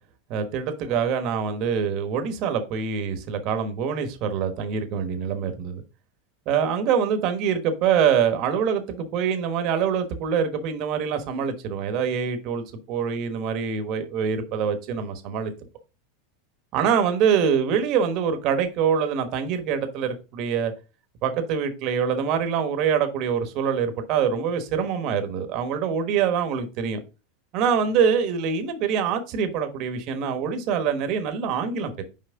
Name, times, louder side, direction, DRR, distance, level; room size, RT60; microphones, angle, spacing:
voice 1, 0.3-5.8 6.5-15.5 16.7-20.7 21.2-27.0 27.5-32.0, right 7 dB, 50° right, 1.2 m, -25 dB
5.8 x 4.6 x 3.7 m
supercardioid pair, 130°, 0 cm